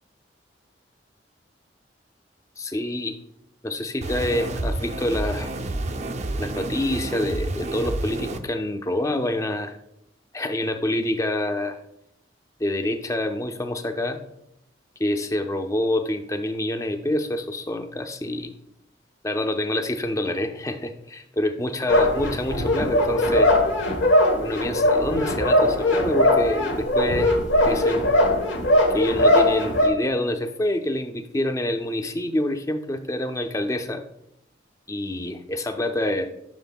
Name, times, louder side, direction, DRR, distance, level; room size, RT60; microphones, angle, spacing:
voice 1, 2.6-3.2 3.6-5.5 6.4-9.7 10.3-11.8 12.6-14.2 15.0-18.5 19.2-23.5 24.4-27.3 27.6-28.0 28.9-34.0 34.9-36.3, left 1 dB, 15° left, 7 dB, 0.5 m, -27 dB
sound 1, 4.0-8.4, right 2 dB, 35° right, 0.5 m, -29 dB
sound 2, 21.9-29.9, left 1 dB, 85° left, 1.2 m, -20 dB
10.5 x 6.2 x 2.3 m, 0.80 s
head